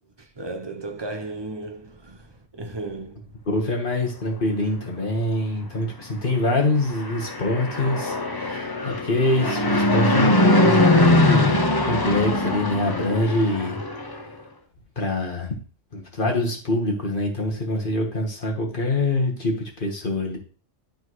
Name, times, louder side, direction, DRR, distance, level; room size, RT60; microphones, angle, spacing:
voice 1, 0.4-2.2 2.5-3.2, right 2 dB, 25° right, 0.7 m, -34 dB
voice 2, 3.5-11.6 11.8-13.8 15.0-15.6 15.9-20.4, left 2 dB, 45° left, 1.5 m, -25 dB
Fixed-wing aircraft airplane, 6.8-14.2, left 1 dB, 25° left, 0.7 m, -21 dB
12.0 x 4.0 x 3.1 m
omnidirectional pair, 1.3 m